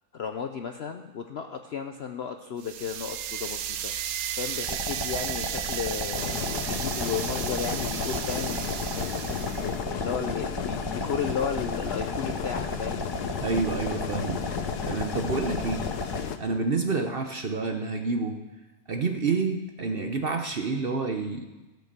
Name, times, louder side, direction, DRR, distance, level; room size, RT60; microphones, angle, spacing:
voice 1, 0.1-3.9 4.3-8.8 9.4-13.0, left 7 dB, 60° left, 6 dB, 0.6 m, -34 dB
sound 1, 2.6-9.8, right 10 dB, 70° right, 1.1 m, -34 dB
sound 2, 4.6-16.2, left 1 dB, 15° left, 1.0 m, -34 dB
sound 3, 6.1-16.4, left 8 dB, 80° left, 1.3 m, -34 dB
voice 2, 13.4-14.4 14.9-15.9 16.4-18.4 18.9-21.7, right 4 dB, 45° right, 5 dB, 0.8 m, -28 dB
16.5 x 6.5 x 6.7 m, 1.1 s
omnidirectional pair, 1.7 m